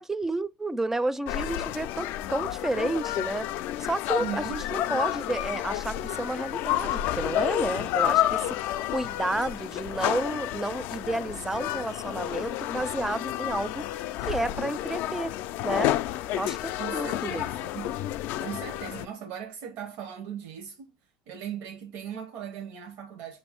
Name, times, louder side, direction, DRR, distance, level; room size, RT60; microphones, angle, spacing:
voice 1, 0.0-3.5 3.8-13.9 14.3-15.3 15.6-16.0 16.3-17.5, right 2 dB, 10° right, 0.4 m, -31 dB
sound 1, 1.3-19.1, left 13 dB, 70° left, 0.3 m, -30 dB
voice 2, 4.2-4.6 16.8-18.0 18.4-21.0 21.3-23.4, right 8 dB, 70° right, 0.8 m, -38 dB
5.8 x 2.6 x 3.4 m
supercardioid pair, 85°, 3 cm